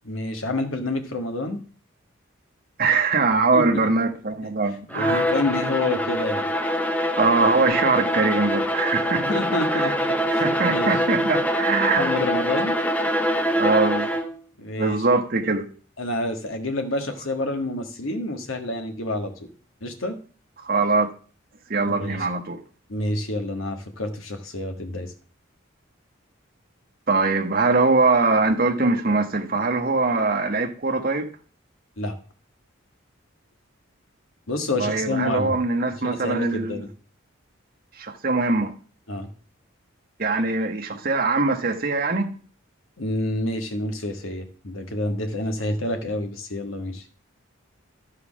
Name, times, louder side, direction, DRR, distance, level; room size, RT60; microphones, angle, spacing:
voice 1, 0.1-1.6 3.5-3.9 5.0-6.5 9.2-10.9 12.0-12.8 14.6-15.0 16.0-19.5 19.8-20.2 21.8-22.3 22.9-25.1 32.0-32.2 34.5-35.6 36.0-36.9 39.1-39.3 43.0-47.0, left 2 dB, 80° left, 1.6 m, -28 dB
voice 2, 2.8-5.3 7.2-9.4 9.7-9.9 10.4-12.2 13.6-14.1 14.8-15.7 20.6-21.1 21.7-22.6 27.1-31.3 34.8-36.8 38.0-38.7 40.2-42.3, right 3 dB, 45° right, 1.1 m, -22 dB
Bowed string instrument, 4.9-14.4, equal, 5° left, 0.6 m, -24 dB
12.0 x 4.9 x 6.2 m
head